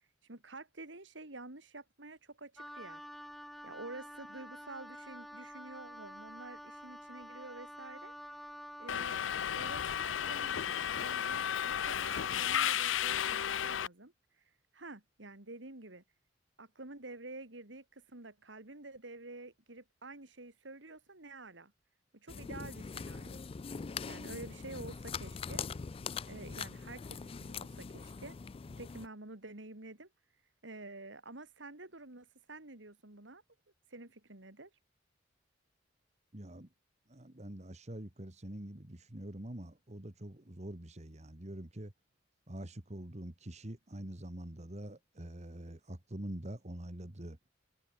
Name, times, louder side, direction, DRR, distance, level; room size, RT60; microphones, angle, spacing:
voice 1, 0.2-3.0 3.6-8.1 8.8-9.2 9.5-14.1 14.7-16.0 16.6-21.7 22.1-23.4 24.1-25.6 26.2-28.4 28.7-30.1 30.6-33.4 33.9-34.7, right 2 dB, 70° right, 2.9 m, -49 dB
Wind instrument woodwind instrument, 2.6-9.0, equal, ahead, 5.3 m, -49 dB
Subway metro underground, 8.9-13.9, left 9 dB, 85° left, 0.6 m, -33 dB
sound 1, 22.3-29.1, left 5 dB, 30° left, 0.4 m, -42 dB
voice 2, 36.3-36.7 37.1-41.9 42.5-47.4, right 1 dB, 35° right, 2.0 m, -45 dB
head